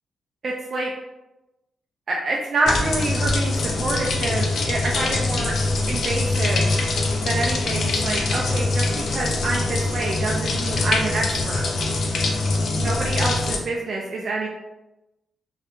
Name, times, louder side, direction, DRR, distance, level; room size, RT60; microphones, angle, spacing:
voice 1, 0.4-0.9 2.1-5.5 5.9-6.7 7.2-11.6 12.8-14.5, right 2 dB, 60° right, -2 dB, 0.3 m, -27 dB
sound 1, 2.7-13.6, left 2 dB, 70° left, 0.4 m, -23 dB
2.2 x 2.1 x 2.9 m, 0.99 s
cardioid pair, 60°, 0 cm